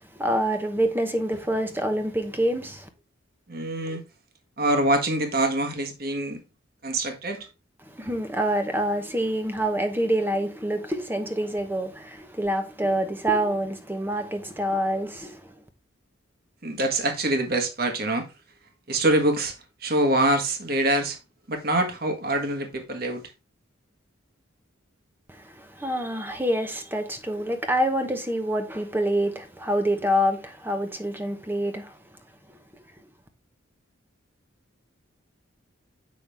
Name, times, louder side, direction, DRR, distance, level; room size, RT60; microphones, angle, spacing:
voice 1, 0.1-2.9 7.8-15.5 25.3-32.0 32.5-32.6, right 1 dB, 10° right, 0.9 m, -26 dB
voice 2, 3.5-4.0 4.6-6.4 6.8-7.5 16.6-18.3 18.9-19.5 19.8-21.2 21.5-23.2, right 1 dB, 45° right, 1.4 m, -24 dB
7.4 x 5.9 x 3.4 m
head